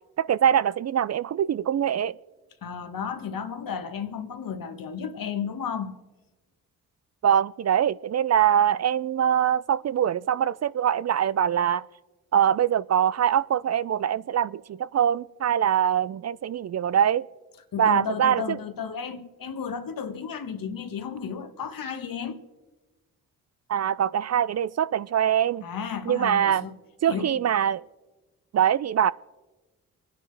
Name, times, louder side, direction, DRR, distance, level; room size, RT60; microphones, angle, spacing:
voice 1, 0.2-2.1 7.2-11.8 12.3-17.3 17.8-18.6 23.7-25.6 26.1-26.7 27.0-27.8 28.5-29.1, right 9 dB, 45° right, 0.4 m, -23 dB
voice 2, 2.6-6.0 17.7-22.4 25.6-26.8 27.1-27.4, left 7 dB, 60° left, 1.4 m, -33 dB
24.0 x 10.0 x 3.4 m
supercardioid pair, 45°, 37 cm